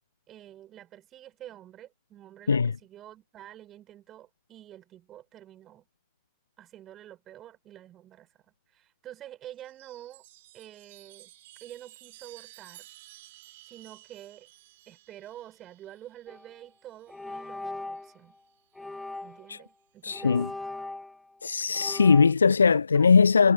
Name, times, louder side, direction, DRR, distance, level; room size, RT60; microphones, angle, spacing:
voice 1, 0.3-5.9 6.6-10.2 10.5-11.3 11.6-12.9 13.7-14.5 14.9-18.4 19.2-20.4 22.9-23.1, right 12 dB, 30° right, 4.9 m, -48 dB
Chime, 9.5-17.4 18.6-19.2, right 16 dB, 55° right, 4.5 m, -54 dB
sound 1, 16.3-16.5 17.1-18.2 18.7-19.5 20.1-21.4 21.7-22.3, left 2 dB, 5° left, 0.8 m, -39 dB
voice 2, 20.0-20.5 21.4-23.5, left 5 dB, 75° left, 0.4 m, -20 dB
figure-of-eight pair, 90°, 0 cm